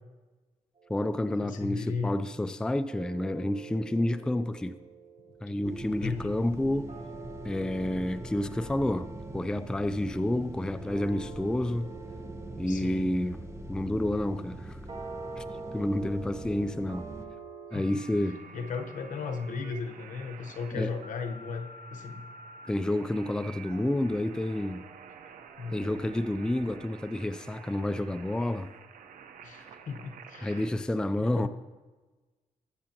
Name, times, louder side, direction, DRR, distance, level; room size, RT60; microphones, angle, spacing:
voice 1, 0.9-4.8 5.4-6.9 7.4-9.1 9.3-11.9 12.6-13.4 13.7-14.8 15.4-15.5 15.7-17.0 17.7-18.4 20.8-20.9 22.7-24.8 25.7-28.7 30.4-31.5, left 1 dB, 5° left, 0.4 m, -29 dB
voice 2, 1.4-2.2 5.5-5.6 6.0-6.4 7.9-8.0 12.7-13.2 17.7-18.0 18.5-22.2 25.2-25.9 29.4-30.7 31.2-31.5, left 5 dB, 75° left, 1.1 m, -36 dB
sound 1, 1.9-2.1 2.9-17.7, right 4 dB, 45° right, 2.9 m, -47 dB
sound 2, 5.6-17.3, right 1 dB, 20° right, 0.8 m, -42 dB
sound 3, 17.7-30.7, right 5 dB, 80° right, 0.9 m, -49 dB
21.0 x 7.4 x 2.9 m
cardioid pair, 100°, 13 cm